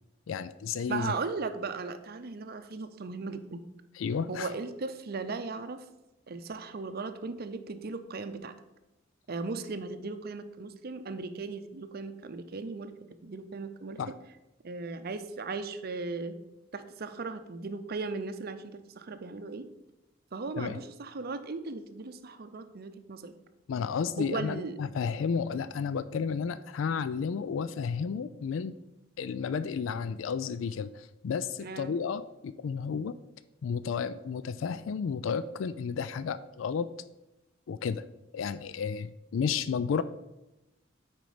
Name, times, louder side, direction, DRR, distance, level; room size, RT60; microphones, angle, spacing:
voice 1, 0.3-1.1 4.0-4.5 14.0-14.1 20.6-20.8 23.7-28.8 29.2-33.1 33.6-36.9 37.7-38.0 38.3-40.0, left 6 dB, 80° left, 14 dB, 0.3 m, -32 dB
voice 2, 0.9-3.6 4.3-5.8 6.3-8.5 9.3-12.9 13.2-14.0 14.6-16.4 16.7-19.7 20.3-23.3 24.2-24.7 31.6-31.9, right 4 dB, 55° right, 9 dB, 0.6 m, -37 dB
9.2 x 4.6 x 5.0 m, 0.96 s
head